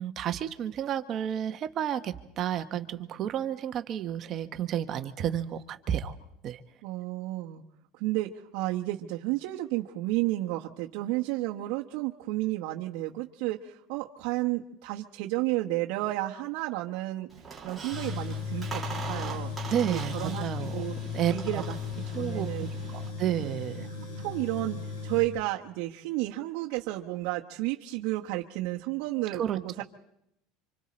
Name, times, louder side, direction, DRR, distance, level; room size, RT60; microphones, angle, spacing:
voice 1, 0.0-6.2 6.4-6.6 19.7-20.8 21.1-21.6 22.1-23.9 29.3-29.8, right 10 dB, 30° right, 8 dB, 0.9 m, -31 dB
voice 2, 6.8-7.6 7.9-17.3 17.6-19.5 19.9-21.0 21.3-21.8 22.1-22.7 23.4-23.5 24.2-29.8, right 17 dB, 60° right, -2 dB, 1.1 m, -32 dB
Squeak, 17.3-23.1, right 5 dB, 5° right, 2.2 m, -42 dB
Tools, 17.9-25.2, left 6 dB, 85° left, 5.6 m, -36 dB
28.5 x 26.0 x 4.3 m, 0.77 s
cardioid pair, 175°, 0 cm